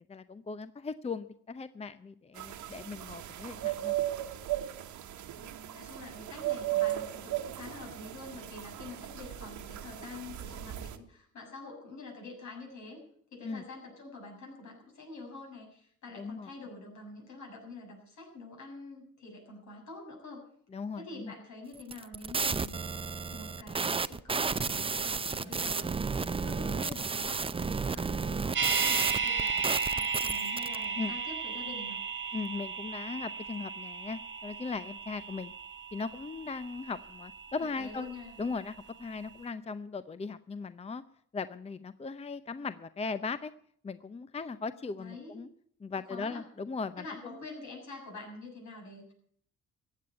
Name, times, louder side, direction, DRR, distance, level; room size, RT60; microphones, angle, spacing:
voice 1, 0.1-3.9 13.4-13.6 16.2-16.5 20.7-21.3 31.0-31.1 32.3-35.5 35.9-38.1 38.4-41.0 41.3-43.5 43.8-45.5 45.8-47.0, left 4 dB, 20° left, 14 dB, 0.6 m, -38 dB
sound 1, 2.4-11.0, right 14 dB, 75° right, 1.3 m, -36 dB
voice 2, 5.4-13.0 13.3-20.5 21.0-22.8 23.3-25.9 26.2-29.6 29.9-32.0 37.8-38.3 45.0-45.5 46.1-46.4 47.0-49.1, left 3 dB, 70° left, 1 dB, 7.1 m, -46 dB
sound 2, 21.8-30.8, right 4 dB, 20° right, 0.5 m, -32 dB
sound 3, 28.5-38.6 38.9-39.0, right 5 dB, 40° right, 1.2 m, -35 dB
15.0 x 8.7 x 9.6 m, 0.62 s
cardioid pair, 90°, 30 cm